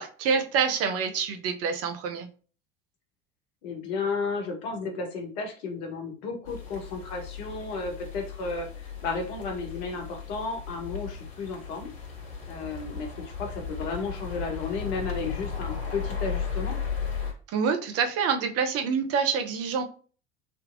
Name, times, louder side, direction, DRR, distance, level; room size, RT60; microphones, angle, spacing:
voice 1, 0.0-2.3 17.5-19.8, right 6 dB, 40° right, 6 dB, 0.7 m, -27 dB
voice 2, 3.6-11.9 12.5-16.8, left 4 dB, 60° left, 3 dB, 1.2 m, -33 dB
sound 1, 6.4-17.3, left 6 dB, 40° left, 1.7 m, -36 dB
3.3 x 2.8 x 2.6 m, 0.38 s
figure-of-eight pair, 70°, 35 cm